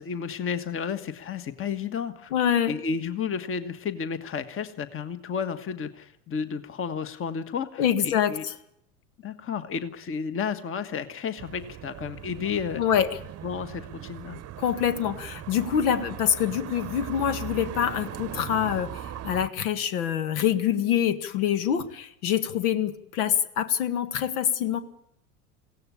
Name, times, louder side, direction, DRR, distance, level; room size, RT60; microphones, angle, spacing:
voice 1, 0.0-2.3 2.7-8.4 9.2-12.8 13.4-14.4, left 6 dB, 25° left, 10 dB, 1.5 m, -32 dB
voice 2, 2.3-2.7 7.8-8.5 12.8-13.2 14.6-24.8, left 9 dB, 70° left, 10 dB, 1.8 m, -25 dB
sound 1, 11.4-19.5, right 11 dB, 30° right, 1.0 m, -39 dB
22.0 x 17.0 x 8.6 m, 0.77 s
hypercardioid pair, 95°, 46 cm